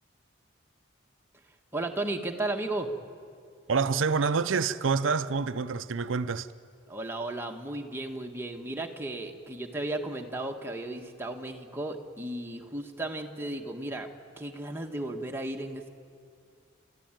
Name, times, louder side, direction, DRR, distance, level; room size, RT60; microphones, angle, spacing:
voice 1, 1.7-2.9 6.9-14.1 14.4-15.9, right 2 dB, 10° right, 1.4 m, -34 dB
voice 2, 3.7-6.5, right 5 dB, 85° right, 0.6 m, -27 dB
30.0 x 13.5 x 9.0 m
head